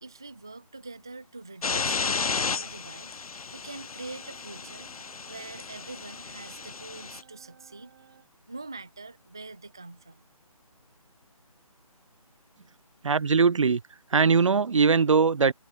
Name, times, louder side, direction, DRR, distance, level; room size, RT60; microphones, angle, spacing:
voice 1, 0.0-4.9 5.2-8.1 8.5-10.2, right 3 dB, 5° right, 0.4 m, -44 dB
sound 1, 1.6-7.2, left 5 dB, 75° left, 0.6 m, -33 dB
sound 2, 4.2-8.3, right 8 dB, 30° right, 1.5 m, -57 dB
voice 2, 13.0-13.8 14.1-15.5, right 5 dB, 55° right, 0.6 m, -21 dB
figure-of-eight pair, 160°, 19 cm